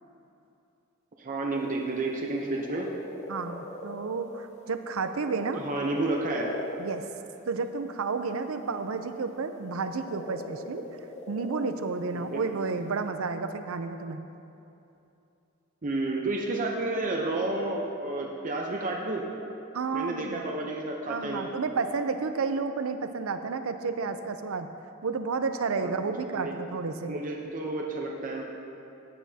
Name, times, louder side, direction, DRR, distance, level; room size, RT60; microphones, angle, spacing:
voice 1, 1.2-2.9 5.6-6.5 12.1-12.4 15.8-19.2 19.9-21.5 25.8-25.9 26.2-26.6 27.1-28.4, right 2 dB, 40° right, -1 dB, 0.7 m, -31 dB
sound 1, 1.5-7.8 9.0-13.1, left 2 dB, 35° left, 0.7 m, -41 dB
voice 2, 3.3-5.6 6.8-7.1 7.5-10.8 11.3-14.2 19.7-20.5 21.1-24.7 25.0-27.1, right 4 dB, 90° right, 9 dB, 0.6 m, -31 dB
15.0 x 9.5 x 2.8 m, 2.8 s
head